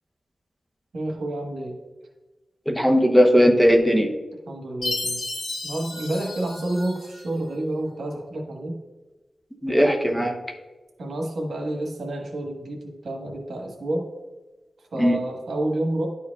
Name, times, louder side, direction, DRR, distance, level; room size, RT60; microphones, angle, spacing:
voice 1, 0.9-1.8 4.5-5.2 5.6-8.8 11.0-14.1 14.9-16.1, right 1 dB, 85° right, 0 dB, 1.3 m, -29 dB
voice 2, 2.7-4.1 9.6-10.4 15.0-15.2, equal, 5° left, 2 dB, 0.9 m, -18 dB
Chime, 4.8-7.3, left 2 dB, 85° left, 1.2 m, -32 dB
11.0 x 4.5 x 2.3 m, 1.2 s
wide cardioid pair, 90°, 0 cm